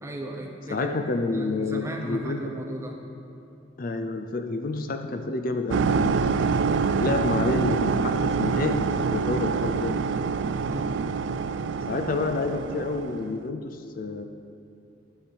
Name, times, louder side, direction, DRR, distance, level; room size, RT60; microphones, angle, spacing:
voice 1, 0.0-1.0 1.3-3.0 10.7-10.9, right 1 dB, 15° right, 0 dB, 0.9 m, -35 dB
voice 2, 0.7-2.4 3.8-6.6 7.0-10.1 11.9-14.2, left 3 dB, 50° left, 7 dB, 0.5 m, -29 dB
sound 1, 5.7-13.3, right 5 dB, 75° right, 0.4 m, -26 dB
12.0 x 4.8 x 7.0 m, 2.6 s
head